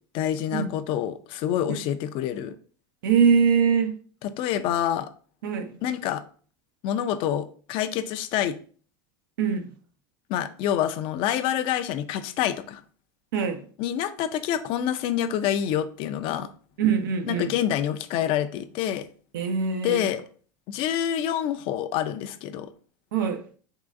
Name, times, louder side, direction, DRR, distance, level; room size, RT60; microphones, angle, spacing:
voice 1, 0.1-2.5 4.2-5.1 5.8-6.2 6.8-8.6 10.3-12.8 13.8-16.5 17.3-19.1 19.8-20.2 20.7-22.7, left 10 dB, 55° left, 0.4 m, -27 dB
voice 2, 3.0-4.0 5.4-5.8 9.4-9.7 13.3-13.7 16.8-17.5 19.3-20.1 23.1-23.5, right 6 dB, 90° right, 0.5 m, -23 dB
3.7 x 3.0 x 2.5 m
supercardioid pair, 120°, 11 cm